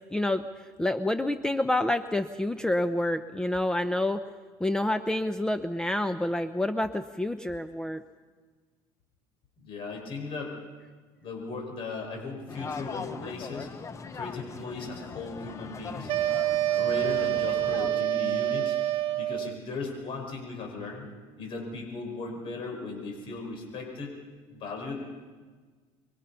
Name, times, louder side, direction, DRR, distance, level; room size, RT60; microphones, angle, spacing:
voice 1, 0.1-4.2 4.6-8.0, left 1 dB, 5° left, 9 dB, 0.7 m, -28 dB
voice 2, 9.6-10.5 11.2-13.7 14.1-16.1 16.8-18.8 19.2-21.1 21.4-24.1 24.5-24.9, left 3 dB, 50° left, 1 dB, 5.2 m, -37 dB
sound 1, 12.5-18.0, left 5 dB, 25° left, 1.0 m, -40 dB
sound 2, 16.1-19.6, right 13 dB, 50° right, 1.0 m, -27 dB
26.0 x 22.5 x 5.7 m, 1.4 s
cardioid pair, 125°, 11 cm